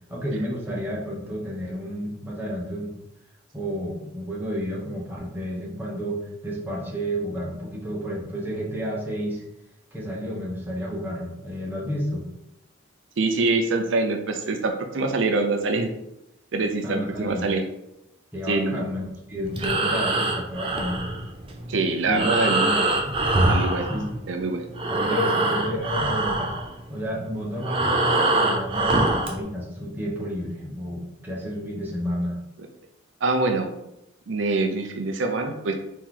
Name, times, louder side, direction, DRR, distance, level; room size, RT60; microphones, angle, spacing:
voice 1, 0.1-2.9 3.5-9.4 9.9-12.2 16.8-17.5 18.3-21.0 22.0-22.3 22.5-22.8 23.9-24.1 24.9-26.5 26.9-32.4, equal, 10° right, -5 dB, 1.1 m, -31 dB
voice 2, 13.2-15.9 16.5-17.6 18.5-18.8 21.7-22.7 23.5-23.9 24.3-24.6 33.2-33.7 34.3-35.7, right 3 dB, 70° right, 4 dB, 0.5 m, -24 dB
Breathing, 19.4-24.4 24.7-29.4, right 2 dB, 25° right, 0.5 m, -24 dB
4.4 x 3.0 x 3.8 m, 0.86 s
head